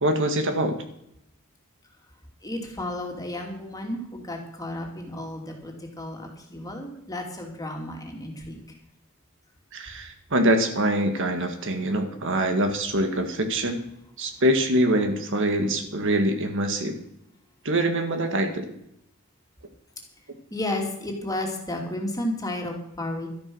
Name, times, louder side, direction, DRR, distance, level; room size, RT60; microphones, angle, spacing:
voice 1, 0.0-0.8 9.7-13.8 14.2-16.9 17.7-18.7, right 1 dB, 60° right, 6 dB, 1.8 m, -24 dB
voice 2, 2.4-8.6 20.5-23.3, left 1 dB, 15° left, 1 dB, 2.8 m, -32 dB
12.5 x 10.5 x 6.3 m, 0.76 s
head